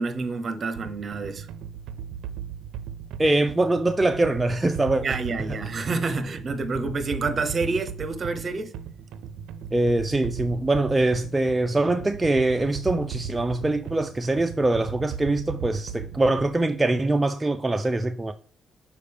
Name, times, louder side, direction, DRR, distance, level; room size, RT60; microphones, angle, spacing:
voice 1, 0.0-1.5 5.0-8.7, right 3 dB, 45° right, 0.9 m, -28 dB
sound 1, 0.8-16.7, right 8 dB, 90° right, 0.4 m, -37 dB
voice 2, 3.2-5.2 9.7-18.3, right 2 dB, 20° right, 0.4 m, -23 dB
6.6 x 4.9 x 3.5 m
cardioid pair, 80°, 0 cm